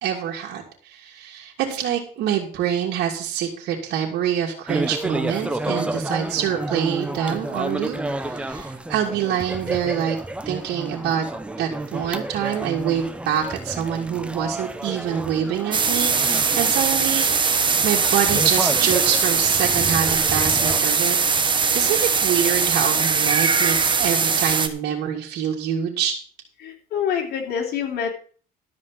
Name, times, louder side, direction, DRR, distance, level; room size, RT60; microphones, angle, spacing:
voice 1, 0.0-10.2 10.4-11.2 11.6-17.6 17.8-21.2 21.7-26.1, right 9 dB, 80° right, -3 dB, 2.9 m, -26 dB
sound 1, 4.7-20.8, right 2 dB, 5° right, 0.9 m, -31 dB
sound 2, 15.7-24.7, right 5 dB, 30° right, 1.4 m, -20 dB
voice 2, 26.6-28.1, left 8 dB, 70° left, 2 dB, 3.6 m, -26 dB
13.0 x 5.4 x 7.7 m, 0.44 s
cardioid pair, 110°, 17 cm